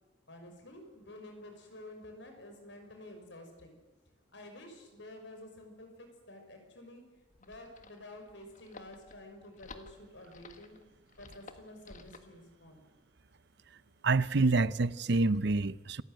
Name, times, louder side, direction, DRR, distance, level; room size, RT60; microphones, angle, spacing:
voice 1, 0.3-3.8 4.3-7.0 7.4-10.8 11.2-12.8, left 1 dB, 70° left, 6.2 m, -50 dB
sound 1, 7.2-12.3, left 3 dB, 45° left, 1.8 m, -54 dB
voice 2, 14.0-16.0, right 3 dB, 60° right, 0.7 m, -27 dB
27.5 x 15.5 x 9.1 m
head